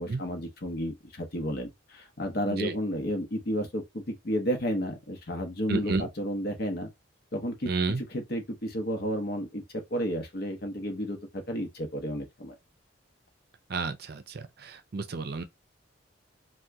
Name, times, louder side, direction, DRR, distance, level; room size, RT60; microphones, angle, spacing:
voice 1, 0.0-6.9 7.3-7.7 8.1-12.5, equal, 50° left, 0.8 m, -32 dB
voice 2, 5.7-6.1 7.6-8.0 13.7-15.4, right 3 dB, 50° right, 0.5 m, -31 dB
2.8 x 2.2 x 3.4 m
head